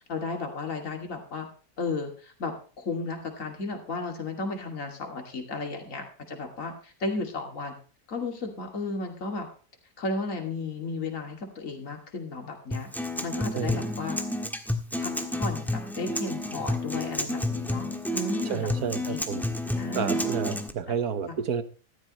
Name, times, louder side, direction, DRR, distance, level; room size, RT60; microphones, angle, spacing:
voice 1, 0.1-1.5 1.8-7.8 8.1-9.5 10.0-12.9 13.2-14.2 15.0-19.2 19.8-20.2 21.3-21.4, left 3 dB, 55° left, 3 dB, 2.8 m, -34 dB
Acoustic guitar, 12.7-20.7, left 1 dB, ahead, 1.3 m, -30 dB
voice 2, 18.5-19.5 20.0-21.6, right 7 dB, 70° right, 12 dB, 1.6 m, -30 dB
14.5 x 12.5 x 3.1 m, 0.38 s
omnidirectional pair, 1.7 m